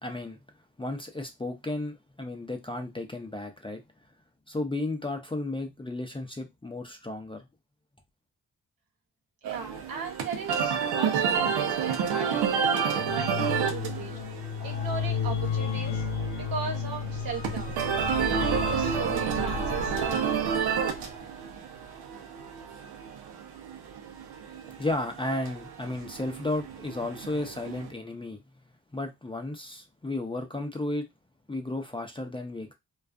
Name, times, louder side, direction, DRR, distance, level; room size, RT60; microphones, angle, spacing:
voice 1, 0.0-0.4 0.8-3.8 4.5-7.4 24.8-28.4 28.9-31.1 31.5-32.7, left 2 dB, 15° left, 0.5 m, -33 dB
voice 2, 9.4-14.2 14.6-16.0 16.5-17.7 18.3-20.5, right 5 dB, 65° right, 1.1 m, -37 dB
sound 1, 9.4-27.9, right 7 dB, 80° right, 0.6 m, -30 dB
sound 2, 12.9-21.2, left 6 dB, 90° left, 0.5 m, -33 dB
2.4 x 2.3 x 2.3 m
supercardioid pair, 45°, 39 cm